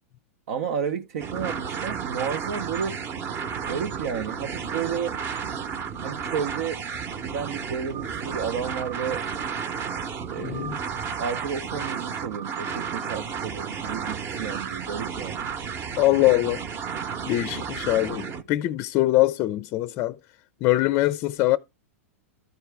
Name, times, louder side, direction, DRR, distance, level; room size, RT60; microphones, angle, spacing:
voice 1, 0.5-3.0 3.7-5.2 6.0-6.8 7.2-9.2 10.3-10.8 11.2-15.5, right 7 dB, 70° right, 0.7 m, -31 dB
sound 1, 1.2-18.4, right 6 dB, 30° right, 0.9 m, -32 dB
voice 2, 10.4-10.8 16.0-16.6 17.3-20.2 20.6-21.6, left 17 dB, 40° left, 0.4 m, -23 dB
13.0 x 4.6 x 3.4 m
hypercardioid pair, 120°, 8 cm